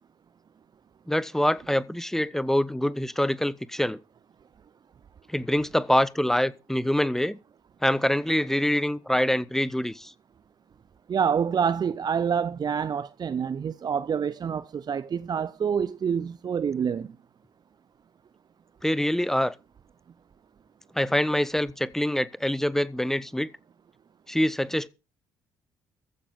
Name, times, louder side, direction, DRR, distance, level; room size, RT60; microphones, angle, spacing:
voice 1, 1.1-4.0 5.3-7.4 7.8-10.1 18.8-19.5 20.9-23.5 24.3-24.9, left 1 dB, 5° left, 1.0 m, -25 dB
voice 2, 11.1-17.1, right 7 dB, 40° right, 0.7 m, -27 dB
14.5 x 9.5 x 5.4 m
figure-of-eight pair, 45°, 11 cm